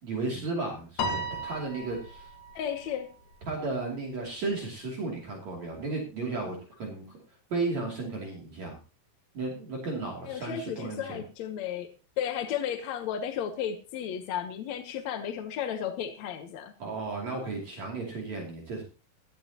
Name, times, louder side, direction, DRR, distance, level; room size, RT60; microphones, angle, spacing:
voice 1, 0.0-2.3 3.5-7.2 7.5-8.8 9.3-11.2 16.8-18.8, right 3 dB, 50° right, -1 dB, 3.9 m, -34 dB
Piano, 1.0-3.5, equal, 80° left, 3.7 m, -35 dB
voice 2, 2.6-3.1 10.3-11.9 12.2-16.7, left 9 dB, 65° left, 6 dB, 1.9 m, -33 dB
16.5 x 13.5 x 2.9 m, 0.34 s
omnidirectional pair, 4.3 m